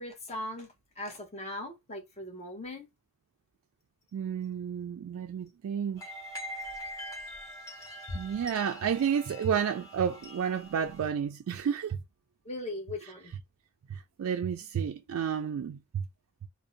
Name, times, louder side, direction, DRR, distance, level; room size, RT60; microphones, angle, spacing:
voice 1, 0.0-2.9 12.4-13.3, left 1 dB, 30° left, 0.8 m, -39 dB
voice 2, 4.1-6.0 8.1-12.0 13.9-16.0, right 7 dB, 75° right, 0.3 m, -31 dB
sound 1, 6.0-11.0, equal, 15° left, 1.2 m, -43 dB
2.5 x 2.1 x 2.6 m
head